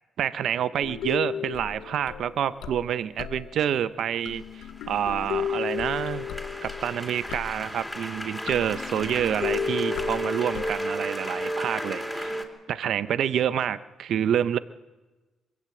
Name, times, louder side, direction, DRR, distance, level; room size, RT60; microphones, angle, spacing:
voice 1, 0.2-6.3 6.6-12.4 12.7-14.6, right 9 dB, 70° right, 15 dB, 0.6 m, -28 dB
sound 1, 0.8-3.8 4.2-7.9 8.4-10.7, left 8 dB, 85° left, 0.9 m, -34 dB
sound 2, 4.3-12.4, right 1 dB, 5° left, 2.9 m, -34 dB
22.5 x 15.5 x 7.8 m, 1.2 s
cardioid pair, 90°, 0 cm